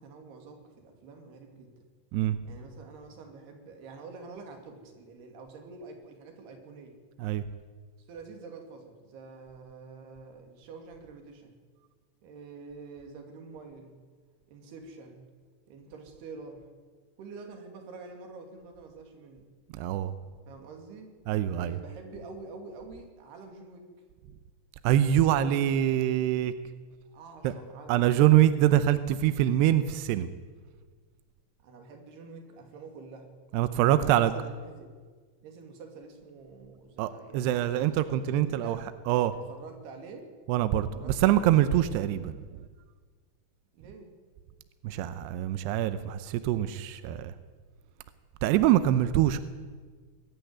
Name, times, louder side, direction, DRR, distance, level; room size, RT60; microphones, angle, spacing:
voice 1, 0.0-1.8 2.4-7.0 8.1-11.6 12.2-14.0 14.5-15.3 15.7-16.7 17.2-19.5 20.5-21.1 21.5-23.9 27.1-28.3 31.6-33.3 33.9-34.9 35.4-38.9 39.3-40.3 40.9-41.6 43.7-44.1, right 4 dB, 60° right, 4 dB, 4.3 m, -47 dB
voice 2, 19.7-20.1 21.3-21.7 24.8-26.5 27.4-27.5 27.9-30.3 33.5-34.3 37.0-38.8 39.1-39.3 40.5-42.3 44.8-47.3 48.4-49.4, right 12 dB, 80° right, 12 dB, 2.4 m, -24 dB
21.5 x 13.0 x 9.6 m, 1.5 s
omnidirectional pair, 5.7 m